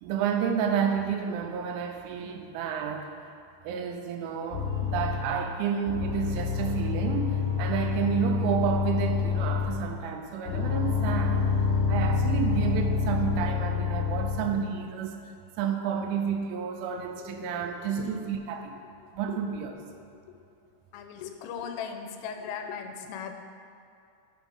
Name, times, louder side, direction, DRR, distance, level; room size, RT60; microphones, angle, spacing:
voice 1, 0.0-3.1 3.6-11.5 11.9-15.2 15.6-18.8 19.1-19.7, right 7 dB, 85° right, 4 dB, 3.1 m, -30 dB
sound 1, 4.5-5.4 5.9-9.9 10.5-14.6, left 5 dB, 65° left, 2.2 m, -27 dB
voice 2, 17.2-18.2 19.3-19.4 20.1-20.4 20.9-23.3, left 7 dB, 85° left, 6 dB, 3.1 m, -39 dB
7.0 x 5.9 x 5.5 m, 2.5 s
omnidirectional pair, 5.6 m